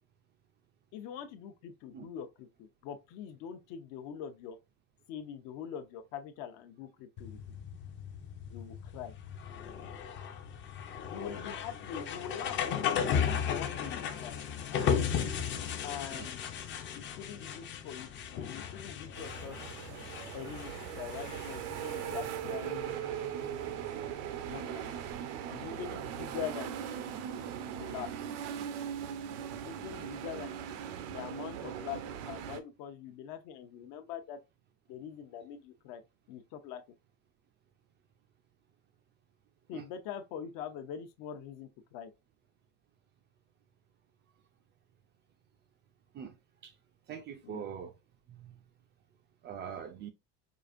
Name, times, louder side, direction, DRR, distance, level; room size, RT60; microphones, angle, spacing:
voice 1, 0.9-4.6 5.1-7.4 8.5-9.1 11.0-13.1 13.4-14.4 15.8-16.4 16.9-19.6 20.3-22.9 24.5-24.9 25.5-26.8 27.7-28.1 29.5-30.6 31.0-34.4 34.9-36.0 36.3-36.8 39.7-42.1 47.4-47.7, left 8 dB, 60° left, 0.8 m, -43 dB
sound 1, 7.2-25.1, left 8 dB, 30° left, 0.5 m, -36 dB
sound 2, 19.2-32.6, right 9 dB, 80° right, 0.7 m, -39 dB
voice 2, 47.1-47.9 49.4-50.1, right 8 dB, 30° right, 0.4 m, -42 dB
4.9 x 2.4 x 2.5 m
cardioid pair, 145°, 36 cm